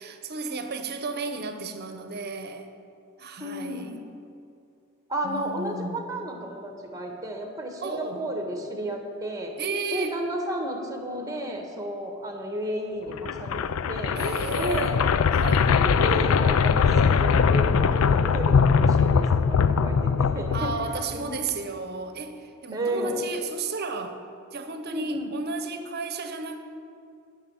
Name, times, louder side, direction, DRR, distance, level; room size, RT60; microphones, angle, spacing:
voice 1, 0.0-2.7 3.2-4.0 5.2-6.1 7.8-8.2 9.6-10.2 14.1-15.0 15.3-15.7 20.5-24.2 24.5-26.6, right 4 dB, 50° right, 7 dB, 0.9 m, -33 dB
voice 2, 3.4-4.0 5.1-9.5 9.9-14.2 14.6-15.0 15.7-20.7 21.1-21.4 22.7-23.2 24.9-25.3, equal, 15° right, 3 dB, 1.4 m, -32 dB
sound 1, 13.1-21.2, left 6 dB, 75° left, 0.4 m, -21 dB
10.5 x 6.2 x 8.8 m, 2.5 s
head